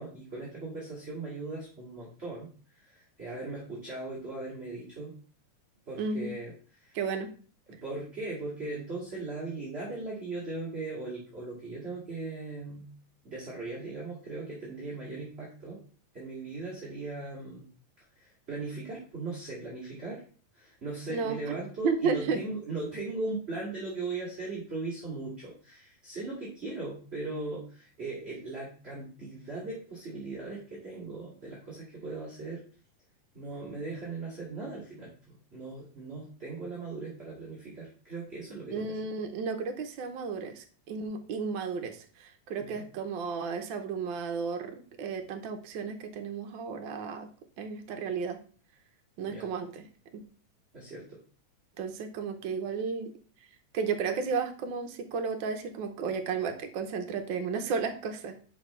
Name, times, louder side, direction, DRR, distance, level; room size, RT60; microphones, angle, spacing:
voice 1, 0.0-5.1 5.8-7.0 7.7-12.9 13.2-15.8 16.1-17.7 18.1-20.2 20.5-32.6 33.3-39.0 42.6-42.9 49.2-49.5 50.7-51.2, right 3 dB, 20° right, -6 dB, 2.5 m, -38 dB
voice 2, 6.0-6.3 6.9-7.3 21.1-21.6 21.8-22.4 38.7-47.3 47.6-48.4 49.2-49.8 50.1-50.2 51.8-53.1 53.7-58.4, right 5 dB, 90° right, 6 dB, 1.0 m, -33 dB
9.7 x 5.8 x 3.2 m, 0.41 s
omnidirectional pair, 3.4 m